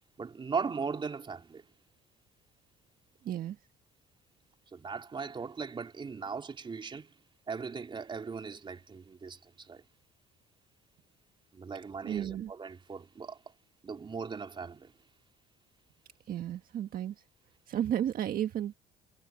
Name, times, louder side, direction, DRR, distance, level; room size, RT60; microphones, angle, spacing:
voice 1, 0.2-1.6 4.7-7.1 7.5-9.8 11.5-13.4 13.8-14.9, right 5 dB, 30° right, 3.6 m, -38 dB
voice 2, 3.2-3.6 12.0-12.5 16.3-17.1 17.7-18.7, right 11 dB, 60° right, 1.6 m, -33 dB
cardioid pair, 110°, 17 cm